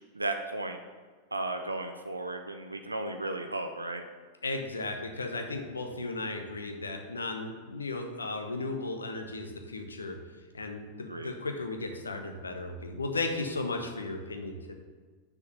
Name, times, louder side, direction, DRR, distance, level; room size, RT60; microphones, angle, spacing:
voice 1, 0.1-0.8 1.3-4.0 11.1-11.3, right 2 dB, 80° right, 5 dB, 0.6 m, -34 dB
voice 2, 4.4-10.2 10.5-14.7, left 2 dB, 75° left, 5 dB, 1.0 m, -35 dB
6.7 x 5.0 x 6.7 m, 1.5 s
figure-of-eight pair, 90°, 0 cm